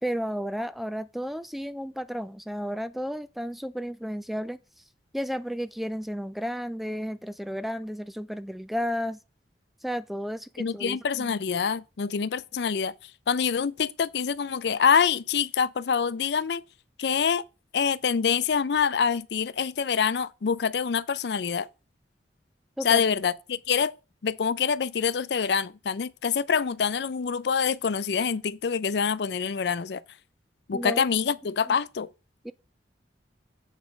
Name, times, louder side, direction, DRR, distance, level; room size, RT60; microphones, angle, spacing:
voice 1, 0.0-4.6 5.1-9.2 9.8-11.3 22.8-23.0 30.7-31.1 31.7-31.8 32.4-32.5, equal, ahead, 0.3 m, -33 dB
voice 2, 10.6-12.9 13.3-16.6 17.0-17.4 17.7-21.7 22.8-23.9 24.2-30.0 30.7-32.1, left 6 dB, 65° left, 0.5 m, -26 dB
7.5 x 5.2 x 4.9 m
head